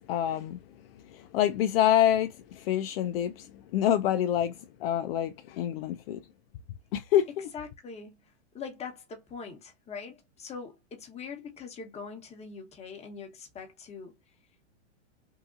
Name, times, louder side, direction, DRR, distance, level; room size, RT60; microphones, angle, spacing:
voice 1, 0.1-0.6 1.1-2.3 2.5-3.5 3.7-4.5 4.8-6.2 6.9-7.5, left 11 dB, 55° left, 0.5 m, -26 dB
voice 2, 7.5-8.2 8.5-14.1, left 5 dB, 20° left, 1.1 m, -42 dB
3.6 x 2.7 x 2.5 m
hypercardioid pair, 125°, 35 cm